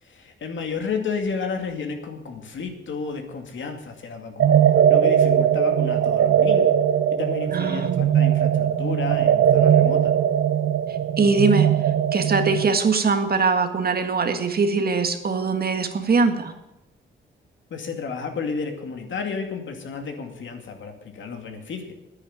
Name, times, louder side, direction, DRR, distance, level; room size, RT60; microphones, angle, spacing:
voice 1, 0.0-6.7 7.1-10.2 17.7-21.9, left 5 dB, 70° left, 4 dB, 2.4 m, -32 dB
sound 1, 4.4-12.7, right 9 dB, 70° right, 0.8 m, -19 dB
voice 2, 7.5-8.0 11.2-11.7 12.1-16.5, right 4 dB, 50° right, 7 dB, 1.7 m, -21 dB
10.0 x 9.7 x 8.8 m, 0.96 s
cardioid pair, 80°, 21 cm